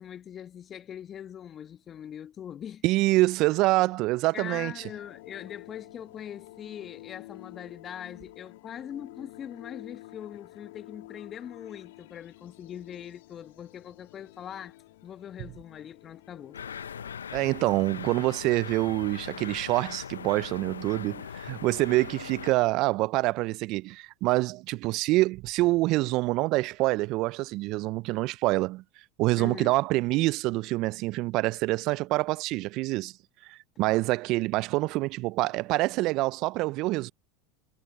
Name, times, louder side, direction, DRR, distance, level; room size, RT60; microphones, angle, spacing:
voice 1, 0.0-2.8 4.3-14.8 15.0-16.6 29.4-29.7, left 9 dB, 35° left, 1.5 m, -42 dB
voice 2, 2.8-4.7 17.3-28.8 29.2-33.1 33.4-37.1, right 20 dB, 55° right, 0.6 m, -26 dB
sound 1, 4.7-17.2, left 18 dB, 70° left, 3.3 m, -50 dB
sound 2, 16.5-22.5, left 7 dB, 85° left, 0.7 m, -40 dB
hypercardioid pair, 80°, 0 cm